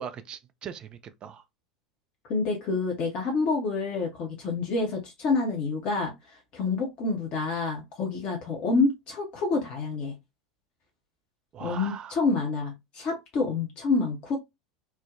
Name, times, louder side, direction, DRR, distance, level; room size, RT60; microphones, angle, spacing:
voice 1, 0.0-1.4 11.5-12.2, right 7 dB, 30° right, 0.4 m, -40 dB
voice 2, 2.3-10.1 11.6-14.4, left 3 dB, 40° left, 0.8 m, -28 dB
3.3 x 2.1 x 2.4 m
figure-of-eight pair, 75°, 3 cm